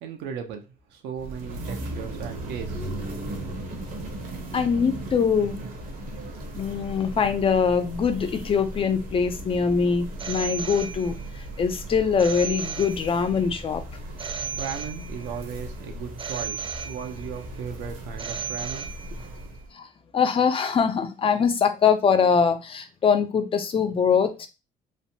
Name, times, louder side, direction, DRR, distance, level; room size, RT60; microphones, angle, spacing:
voice 1, 0.0-0.6 0.9-2.9 14.6-18.9, right 7 dB, 85° right, 4 dB, 0.7 m, -36 dB
sound 1, 1.1-19.7, right 1 dB, 55° right, 0.8 m, -37 dB
voice 2, 4.5-5.5 6.5-11.2 11.6-13.8 19.7-19.9 20.1-24.5, left 6 dB, 35° left, 10 dB, 0.4 m, -23 dB
Telephone, 10.2-11.4 12.2-13.4 14.2-15.4 16.2-17.4 18.2-19.4, right 7 dB, 30° right, 0.4 m, -35 dB
3.1 x 2.1 x 2.7 m, 0.28 s
cardioid pair, 110°, 17 cm